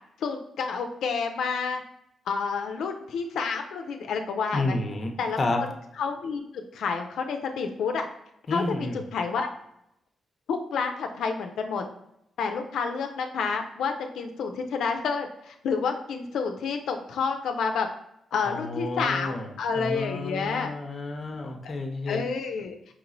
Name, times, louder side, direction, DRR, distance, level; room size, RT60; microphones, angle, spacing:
voice 1, 0.2-1.8 2.3-4.8 5.2-5.7 6.0-8.1 8.5-9.5 10.5-11.8 12.4-17.9 18.3-20.7 21.6-21.7 22.1-22.8, left 5 dB, 80° left, 4 dB, 0.4 m, -29 dB
voice 2, 4.5-5.1 5.4-5.6 8.5-9.0 18.4-22.2, left 2 dB, 30° left, 4 dB, 0.6 m, -30 dB
4.8 x 2.9 x 2.6 m, 0.80 s
cardioid pair, 135°, 0 cm